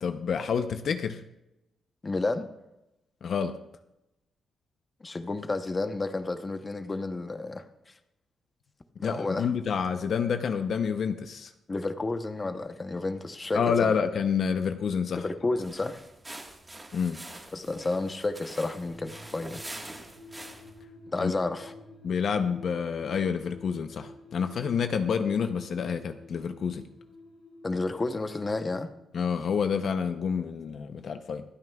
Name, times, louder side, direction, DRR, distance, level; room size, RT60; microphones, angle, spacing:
voice 1, 0.0-1.2 3.2-3.6 9.0-11.5 13.5-15.2 16.9-17.2 21.2-21.3 22.0-26.8 29.1-31.4, left 6 dB, 60° left, 8 dB, 0.6 m, -28 dB
voice 2, 2.0-2.5 5.0-7.9 9.0-9.5 11.7-14.0 15.2-16.0 17.5-19.7 21.1-21.7 27.6-28.9, left 2 dB, 25° left, 8 dB, 0.8 m, -31 dB
sound 1, 15.6-20.8, right 2 dB, 15° right, 1.5 m, -45 dB
sound 2, 18.8-29.6 29.9-30.0, left 2 dB, 85° left, 3.4 m, -50 dB
26.0 x 9.4 x 2.3 m, 0.90 s
cardioid pair, 120°, 0 cm